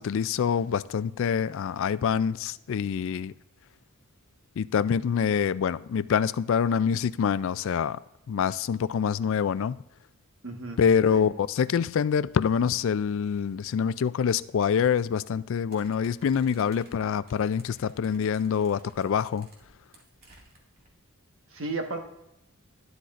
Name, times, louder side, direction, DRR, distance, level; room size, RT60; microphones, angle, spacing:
voice 1, 0.0-3.3 4.6-8.0 8.3-9.8 10.8-19.5, left 7 dB, 60° left, 0.3 m, -26 dB
voice 2, 10.4-11.3 21.5-22.0, right 3 dB, 60° right, 1.3 m, -35 dB
sound 1, 15.7-20.9, right 2 dB, 45° right, 2.1 m, -56 dB
12.0 x 11.5 x 2.5 m
head